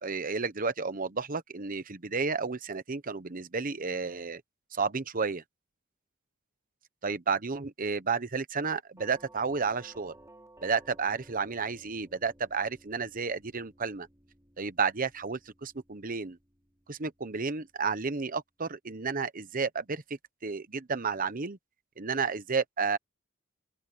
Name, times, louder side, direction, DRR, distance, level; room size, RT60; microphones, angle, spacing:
voice 1, 0.0-4.4 4.7-5.4 7.0-10.1 10.6-14.1 14.6-16.4 16.9-20.0 20.4-21.6 22.0-23.0, right 5 dB, 45° right, 1.0 m, -32 dB
Doorbell, 9.0-17.8, right 1 dB, 15° right, 3.9 m, -57 dB
open air
head